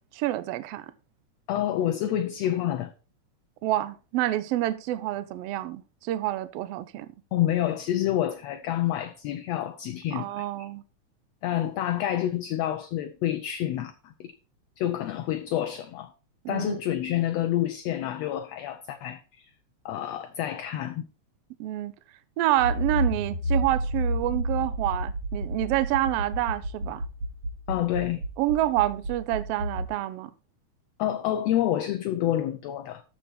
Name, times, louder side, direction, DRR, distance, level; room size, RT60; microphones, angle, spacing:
voice 1, 0.1-0.9 3.6-7.1 10.1-10.8 16.4-16.8 21.6-21.9 22.4-27.0 28.4-30.3, right 15 dB, 85° right, 1.3 m, -28 dB
voice 2, 1.5-2.9 7.3-10.7 11.4-14.3 14.8-16.1 16.5-19.5 19.9-21.0 27.7-28.2 31.0-33.0, left 12 dB, 75° left, 1.6 m, -28 dB
Accelerating revving vroom, 22.6-29.8, right 1 dB, 60° right, 3.6 m, -30 dB
13.5 x 4.5 x 4.2 m
omnidirectional pair, 3.4 m